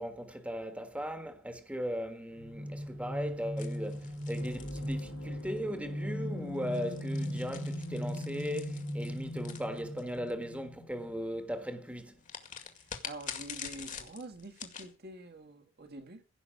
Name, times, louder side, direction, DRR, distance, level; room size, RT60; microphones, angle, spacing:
voice 1, 0.0-12.2, equal, 5° right, 1.6 m, -38 dB
sound 1, 2.3-10.2, equal, 70° right, 2.5 m, -39 dB
sound 2, 3.6-5.6 6.5-10.3 12.2-14.9, left 7 dB, 40° left, 2.2 m, -46 dB
sound 3, 4.3-12.1, left 2 dB, 70° left, 1.9 m, -45 dB
voice 2, 12.7-16.2, right 2 dB, 50° right, 1.8 m, -47 dB
16.0 x 6.1 x 8.0 m
head